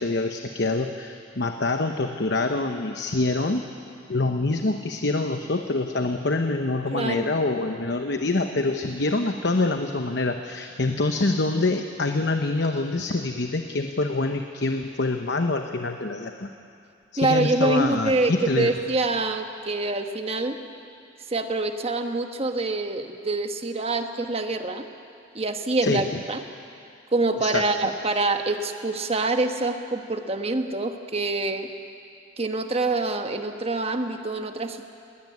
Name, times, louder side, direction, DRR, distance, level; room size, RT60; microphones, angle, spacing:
voice 1, 0.0-3.6 4.1-16.5 17.1-18.7 25.8-26.1 27.4-27.6, left 2 dB, 60° left, 5 dB, 0.9 m, -25 dB
voice 2, 6.9-7.4 17.2-20.6 21.3-24.8 25.3-26.4 27.1-31.7 32.4-34.9, right 2 dB, 30° right, 6 dB, 1.2 m, -26 dB
20.0 x 18.0 x 9.6 m, 2.5 s
head